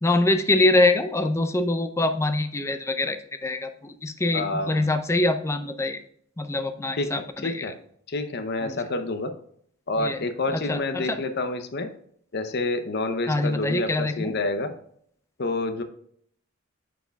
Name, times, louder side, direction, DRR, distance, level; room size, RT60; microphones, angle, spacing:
voice 1, 0.0-6.0 6.4-7.7 8.6-8.8 10.0-10.2 10.5-11.2 13.3-14.3, left 2 dB, 15° left, 9 dB, 0.4 m, -24 dB
voice 2, 4.3-4.9 7.0-7.7 8.1-9.3 9.9-11.9 12.3-14.7 15.4-15.8, left 2 dB, 50° left, 9 dB, 0.7 m, -28 dB
9.1 x 4.7 x 2.3 m, 0.66 s
head